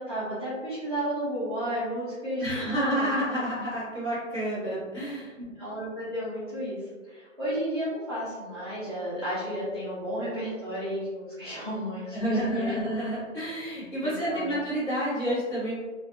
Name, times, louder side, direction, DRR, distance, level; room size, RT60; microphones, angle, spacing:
voice 1, 0.0-3.1 5.4-12.8 13.9-14.5, equal, 20° right, -15 dB, 0.5 m, -33 dB
voice 2, 2.4-5.3 12.1-15.7, equal, 20° left, -12 dB, 1.2 m, -29 dB
3.0 x 2.4 x 2.5 m, 1.4 s
hypercardioid pair, 165°, 39 cm